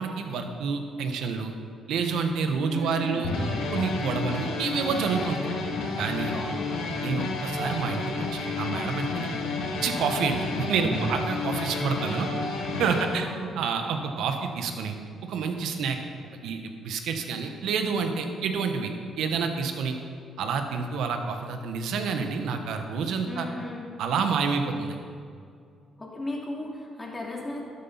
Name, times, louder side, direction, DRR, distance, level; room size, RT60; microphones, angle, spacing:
voice 1, 0.0-1.5 1.9-3.3 3.7-5.4 6.0-6.3 7.0-9.3 9.8-12.3 12.8-13.3 13.6-15.0 15.2-16.0 16.4-18.9 19.2-20.0 20.4-23.5 24.0-25.0, right 5 dB, 80° right, 5 dB, 1.2 m, -28 dB
voice 2, 2.7-3.6 6.3-6.7 12.9-13.5 23.3-23.9 26.0-27.6, left 2 dB, 20° left, -3 dB, 2.7 m, -36 dB
sound 1, 3.2-13.1, left 3 dB, 85° left, 1.9 m, -30 dB
12.5 x 8.5 x 5.5 m, 2.3 s
cardioid pair, 90°, 0 cm